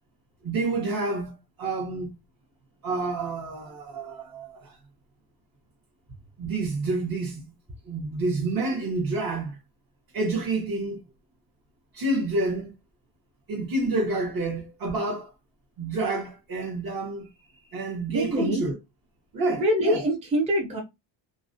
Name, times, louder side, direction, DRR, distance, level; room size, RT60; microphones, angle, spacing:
voice 1, 0.4-2.2 2.8-4.7 6.4-7.5 7.9-9.6 10.1-11.0 11.9-12.7 13.5-15.3 15.8-17.3 17.7-18.8 19.3-20.0, right 2 dB, 50° right, 0.9 m, -28 dB
voice 2, 18.1-18.6 19.5-20.8, equal, 15° right, 0.4 m, -24 dB
2.4 x 2.1 x 2.5 m
cardioid pair, 170°, 46 cm